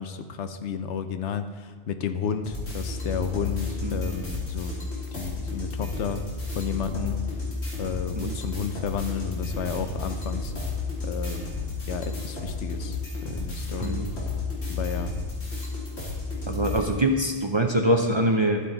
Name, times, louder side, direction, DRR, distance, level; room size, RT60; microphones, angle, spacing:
voice 1, 0.0-4.7 5.1-6.2 6.5-7.2 7.8-10.5 11.0-11.6 11.8-14.3 14.7-15.1, left 7 dB, 85° left, 9 dB, 1.0 m, -32 dB
sound 1, 2.4-16.9, left 3 dB, 65° left, 2.5 m, -32 dB
voice 2, 16.5-18.6, right 1 dB, 30° right, 3 dB, 0.6 m, -24 dB
12.5 x 8.3 x 4.0 m, 1.5 s
omnidirectional pair, 1.2 m